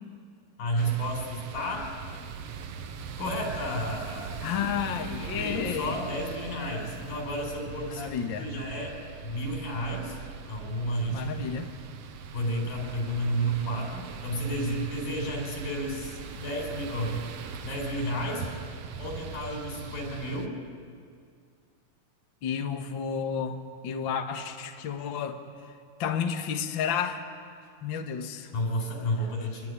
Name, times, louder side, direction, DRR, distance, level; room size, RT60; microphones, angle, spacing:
voice 1, 0.6-1.9 3.2-4.4 5.4-9.0 9.2-10.2 10.5-11.4 12.3-17.3 17.6-18.4 19.0-20.6 28.5-29.7, equal, 85° left, 1 dB, 7.1 m, -31 dB
sound 1, 0.8-20.5, right 6 dB, 60° right, 1.7 m, -41 dB
voice 2, 4.4-6.0 7.8-8.5 11.1-11.7 22.4-25.4 25.7-25.8 26.0-27.2 27.8-28.5, left 7 dB, 50° left, 4 dB, 1.6 m, -31 dB
25.5 x 22.0 x 9.9 m, 2.2 s
omnidirectional pair, 4.0 m